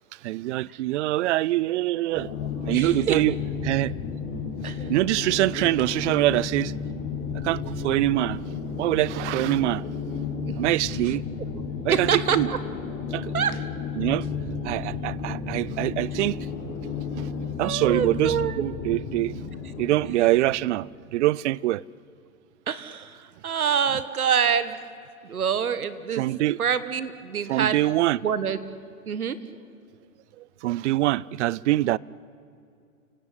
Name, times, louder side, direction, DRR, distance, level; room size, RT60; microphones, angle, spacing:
voice 1, 0.2-2.3 2.7-3.4 3.6-3.9 4.9-6.7 7.4-8.4 8.8-9.8 10.6-11.2 11.8-12.5 13.1-13.3 14.0-14.2 14.6-16.4 16.7-16.8 17.6-19.3 19.8-21.8 26.1-26.6 27.5-28.2 30.6-32.0, right 16 dB, 55° right, 0.7 m, -24 dB
sound 1, 2.1-20.8, left 5 dB, 55° left, 5.4 m, -33 dB
voice 2, 2.7-3.4 4.6-4.8 10.4-10.6 11.0-11.1 11.9-12.6 13.3-13.6 17.6-18.6 22.7-24.8 25.2-26.3 26.6-27.8 28.2-28.6 29.1-29.4, right 7 dB, 80° right, 1.8 m, -26 dB
29.5 x 17.5 x 9.9 m
hypercardioid pair, 110°, 43 cm